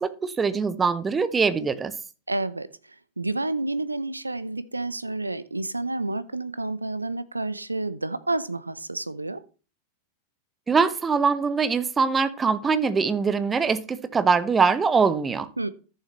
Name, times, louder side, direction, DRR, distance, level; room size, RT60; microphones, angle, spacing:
voice 1, 0.0-1.9 10.7-15.5, right 5 dB, 15° right, 0.8 m, -23 dB
voice 2, 2.3-9.4 15.6-15.7, right 2 dB, 85° right, 0.6 m, -30 dB
13.5 x 7.2 x 3.1 m
figure-of-eight pair, 90°, 0 cm